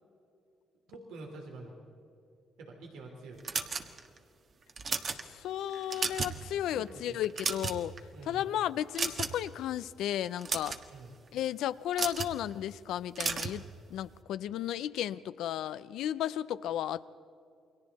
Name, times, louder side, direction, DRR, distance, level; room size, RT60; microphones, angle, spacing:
voice 1, 0.9-1.8 2.6-3.6 6.7-7.2 8.1-8.5 10.9-11.1, right 3 dB, 90° right, 1 dB, 3.3 m, -47 dB
Seatbelt Out A, 3.4-4.2 4.7-5.2 5.7-6.4 6.7-6.9 7.2-8.0 8.9-9.5 10.2-10.8 11.9-12.3 13.1-13.6, right 5 dB, 50° right, 1.5 m, -33 dB
voice 2, 5.1-8.0 8.2-10.8 11.3-13.6 13.9-17.1, left 11 dB, 85° left, 15 dB, 0.5 m, -34 dB
29.0 x 22.5 x 4.2 m, 2.6 s
cardioid pair, 90°, 0 cm